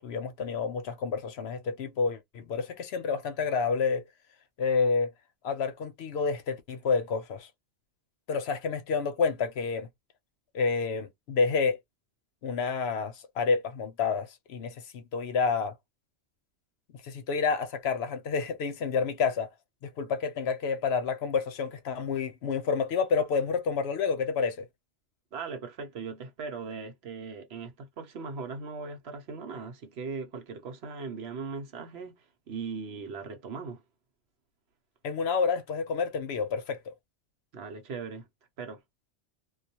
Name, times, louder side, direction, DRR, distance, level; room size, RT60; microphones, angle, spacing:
voice 1, 0.0-4.0 4.6-5.1 5.4-7.5 8.3-9.9 10.5-11.8 12.4-15.7 17.0-19.5 19.8-24.7 35.0-36.9, left 5 dB, 65° left, 0.8 m, -29 dB
voice 2, 25.3-33.8 37.5-38.3 38.6-38.8, right 5 dB, 65° right, 1.0 m, -39 dB
2.3 x 2.2 x 2.7 m
omnidirectional pair, 1.2 m